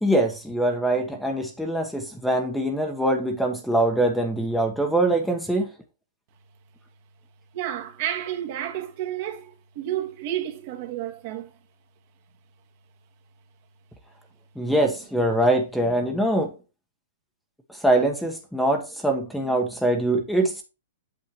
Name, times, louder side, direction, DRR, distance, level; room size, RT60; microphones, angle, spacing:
voice 1, 0.0-5.7 14.6-16.5 17.8-20.6, right 1 dB, ahead, 1.2 m, -23 dB
voice 2, 7.5-11.5, right 11 dB, 45° right, 1.8 m, -31 dB
8.6 x 6.8 x 3.0 m
hypercardioid pair, 145°, 0 cm